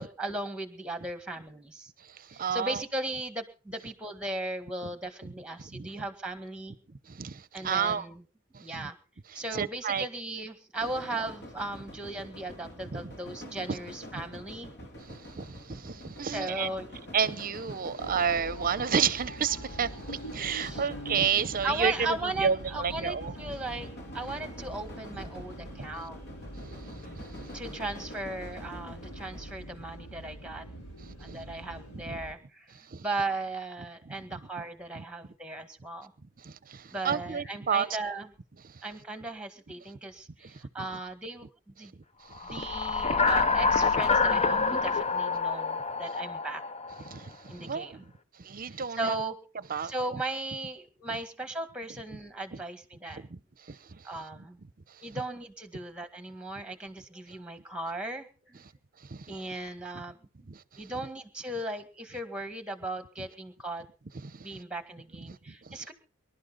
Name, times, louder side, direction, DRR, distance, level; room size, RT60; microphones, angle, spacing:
voice 1, 0.0-1.9 2.3-6.8 7.5-8.2 8.6-9.0 9.3-14.7 16.2-16.9 20.5-20.9 21.6-26.3 27.5-30.7 31.2-36.1 36.9-38.3 38.8-41.9 42.4-46.6 47.5-48.1 48.7-49.3 49.8-53.3 54.0-54.6 55.0-58.6 59.3-60.2 60.8-63.8 64.4-65.9, right 2 dB, 5° right, 1.8 m, -37 dB
voice 2, 2.0-2.8 4.8-4.9 5.2-5.3 5.6-5.9 7.1-8.1 8.5-8.9 9.3-10.1 12.9-13.0 13.4-13.8 15.0-16.7 17.1-23.5 25.8-25.9 26.6-27.6 31.0-31.5 31.9-32.2 32.9-33.0 34.1-34.4 35.0-35.1 36.4-37.9 38.1-38.2 38.6-38.8 40.5-40.6 42.2-42.6 47.0-48.0 48.4-49.2 49.7-50.2 51.1-51.2 52.5-52.6 53.1-54.1 55.1-55.2 59.0-59.4 59.9-60.0 60.5-61.1 64.2-64.6 65.2-65.9, right 6 dB, 40° right, 0.8 m, -32 dB
sound 1, 10.7-29.5, equal, 50° left, 3.1 m, -46 dB
sound 2, 18.0-32.3, right 1 dB, 75° left, 4.0 m, -44 dB
sound 3, 42.4-47.1, left 4 dB, 30° left, 0.8 m, -26 dB
24.5 x 12.0 x 4.0 m
head